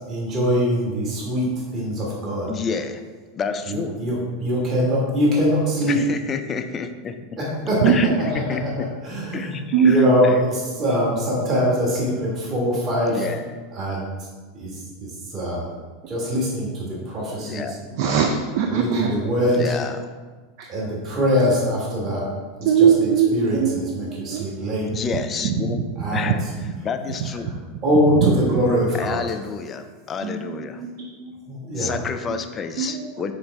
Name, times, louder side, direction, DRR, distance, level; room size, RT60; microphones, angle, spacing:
voice 1, 0.1-2.5 3.7-6.0 7.4-7.8 8.2-8.6 9.0-13.3 13.7-14.0 14.5-15.7 16.1-17.7 18.7-19.7 20.7-22.3 22.6-24.9 26.0-26.3 27.8-29.2 31.5-31.9, equal, 30° right, -5 dB, 1.4 m, -23 dB
voice 2, 2.5-3.0 3.3-4.0 5.9-7.4 7.8-8.9 9.3-10.3 13.1-13.6 17.4-17.8 19.5-20.1 24.9-25.8 26.1-26.4 26.8-27.6 29.0-30.8 31.8-33.3, left 6 dB, 30° left, 8 dB, 0.3 m, -29 dB
voice 3, 18.0-19.1 20.6-20.7 22.7-25.2 25.4-25.8 26.1-26.3 28.1-28.3 30.2-31.4 31.8-32.0 32.3-32.5 32.8-33.2, right 7 dB, 50° right, 3 dB, 0.3 m, -22 dB
3.9 x 3.9 x 3.3 m, 1.4 s
figure-of-eight pair, 85°, 0 cm